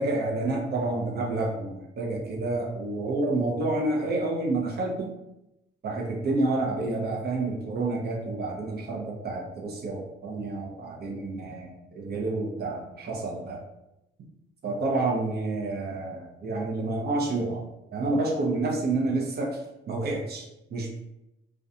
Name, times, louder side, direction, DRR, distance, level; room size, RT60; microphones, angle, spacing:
voice 1, 0.0-5.1 5.8-13.6 14.6-20.9, right 2 dB, 55° right, 0 dB, 0.6 m, -29 dB
2.4 x 2.2 x 2.6 m, 0.89 s
cardioid pair, 90°, 20 cm